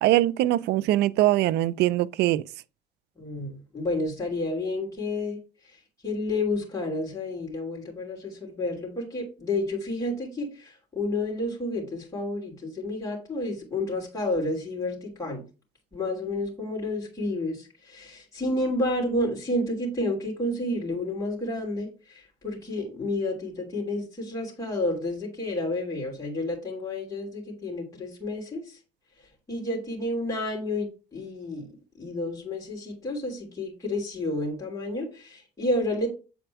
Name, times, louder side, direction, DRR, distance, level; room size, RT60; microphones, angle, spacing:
voice 1, 0.0-2.4, right 15 dB, 80° right, 0.4 m, -22 dB
voice 2, 3.2-5.4 5.6-15.4 15.9-28.8 29.5-31.7 32.0-36.1, left 2 dB, 20° left, 3.1 m, -30 dB
7.9 x 4.2 x 4.6 m
cardioid pair, 110°, 17 cm